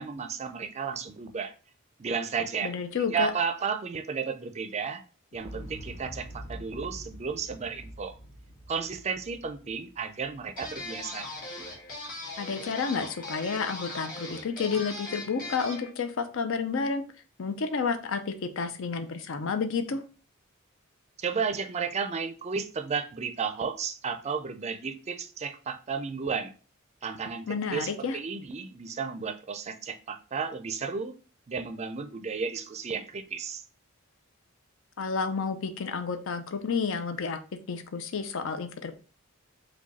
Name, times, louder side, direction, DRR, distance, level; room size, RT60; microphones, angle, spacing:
voice 1, 0.0-1.5 2.0-2.7 3.1-5.0 5.3-8.2 8.7-11.3 21.2-26.5 27.0-31.1 31.5-33.6, right 5 dB, 30° right, 8 dB, 0.4 m, -33 dB
voice 2, 2.6-3.3 12.4-17.0 17.4-20.0 27.5-28.2 35.0-37.4 37.7-38.9, left 5 dB, 65° left, 10 dB, 0.5 m, -30 dB
Explosion, 5.3-11.4 11.7-11.8, equal, 80° left, 1.2 m, -46 dB
sound 1, 10.6-15.9, left 2 dB, 40° left, 1.5 m, -39 dB
4.8 x 2.3 x 4.0 m, 0.37 s
head